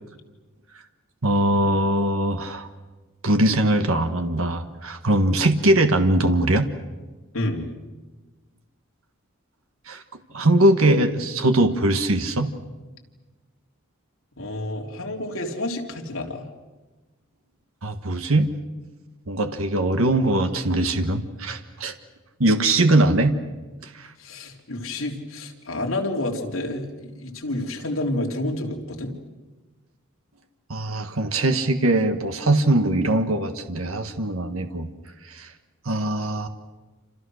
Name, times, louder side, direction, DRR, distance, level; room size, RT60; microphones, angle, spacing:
voice 1, 1.2-2.7 3.2-6.7 9.9-10.0 10.3-12.5 17.8-18.5 19.3-21.9 22.4-23.3 23.9-24.1 30.7-34.9 35.3-35.5 35.8-36.5, right 1 dB, 75° right, 7 dB, 1.6 m, -21 dB
voice 2, 7.3-7.7 14.4-16.5 24.2-29.1, left 1 dB, 70° left, 0 dB, 3.6 m, -29 dB
28.5 x 27.5 x 6.5 m, 1.3 s
head